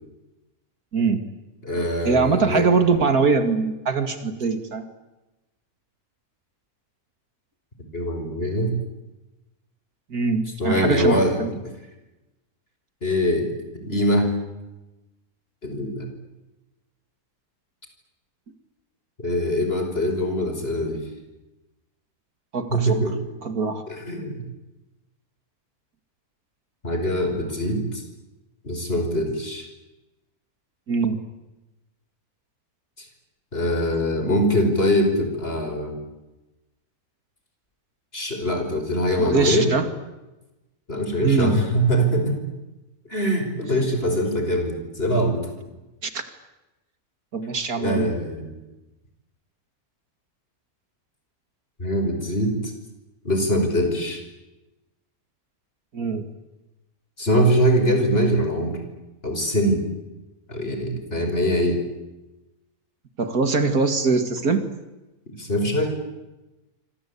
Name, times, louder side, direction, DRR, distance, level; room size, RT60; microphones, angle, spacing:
voice 1, 0.9-1.2 2.0-4.9 10.1-11.5 22.5-23.0 23.4-23.8 30.9-31.2 39.2-39.9 41.2-41.5 46.0-46.2 47.3-48.1 55.9-56.3 63.2-64.6, right 4 dB, 75° right, 8 dB, 2.7 m, -22 dB
voice 2, 1.6-2.7 7.9-8.7 10.6-11.4 13.0-13.5 13.8-14.3 15.6-16.1 19.2-21.0 22.7-23.1 23.9-24.4 26.8-28.0 28.6-29.7 33.5-36.0 38.1-39.7 40.9-42.4 43.1-45.4 47.8-48.5 51.8-52.6 53.2-54.2 57.2-58.8 59.2-59.8 60.5-61.8 65.4-65.9, equal, 40° left, 5 dB, 5.6 m, -23 dB
26.5 x 26.0 x 8.6 m, 1.0 s
omnidirectional pair, 1.6 m